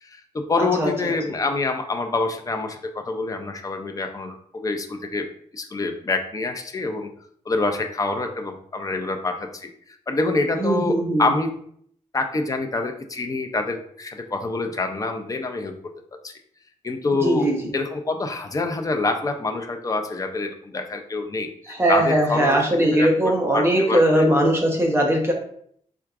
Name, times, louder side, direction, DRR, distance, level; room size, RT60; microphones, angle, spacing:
voice 1, 0.0-5.3 5.5-7.1 7.5-9.7 10.1-11.5 12.1-15.7 16.2-16.3 16.8-21.5 21.9-24.3, left 3 dB, 25° left, 4 dB, 0.5 m, -26 dB
voice 2, 0.6-1.1 10.6-11.3 17.2-17.7 21.7-25.3, right 1 dB, 20° right, 0 dB, 0.9 m, -20 dB
4.6 x 3.6 x 2.4 m, 0.63 s
wide cardioid pair, 160°, 13 cm